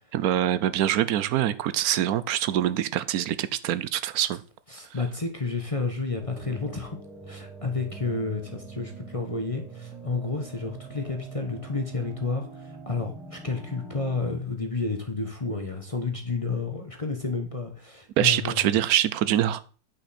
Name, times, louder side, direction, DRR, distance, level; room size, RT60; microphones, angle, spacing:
voice 1, 0.1-4.4 18.2-19.6, right 12 dB, 70° right, 15 dB, 0.9 m, -24 dB
voice 2, 4.7-7.0 7.2-18.8, left 3 dB, 25° left, 4 dB, 0.8 m, -31 dB
sound 1, 6.2-14.2, right 4 dB, ahead, 1.2 m, -43 dB
9.0 x 5.5 x 4.2 m, 0.38 s
omnidirectional pair, 2.0 m